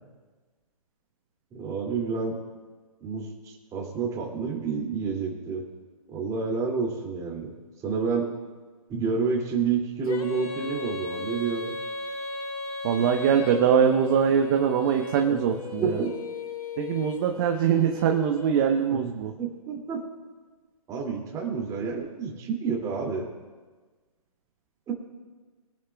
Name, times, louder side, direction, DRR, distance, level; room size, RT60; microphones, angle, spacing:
voice 1, 1.5-2.4 3.0-5.6 6.1-7.5 7.8-8.3 8.9-11.7 15.3-15.4 15.8-16.1 18.9-19.0 19.4-20.0 20.9-23.3 24.9-25.0, right 5 dB, 20° right, 0 dB, 2.6 m, -29 dB
Female singing, 10.1-18.9, left 3 dB, 70° left, 2.0 m, -36 dB
voice 2, 12.8-16.0 16.8-19.3, right 8 dB, 35° right, 4 dB, 1.0 m, -23 dB
22.5 x 11.0 x 2.3 m, 1.4 s
hypercardioid pair, 140°, 19 cm